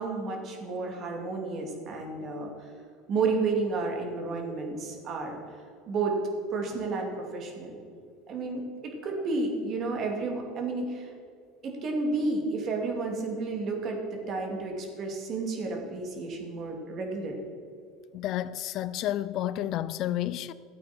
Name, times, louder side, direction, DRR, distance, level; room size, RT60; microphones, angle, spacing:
voice 1, 0.0-2.5 3.1-5.4 5.9-6.2 6.5-7.8 8.3-11.1 11.6-17.4, right 3 dB, 45° right, 2.4 m, -31 dB
voice 2, 18.1-20.5, left 13 dB, 55° left, 0.4 m, -31 dB
12.5 x 8.6 x 4.4 m
supercardioid pair, 110°, 0 cm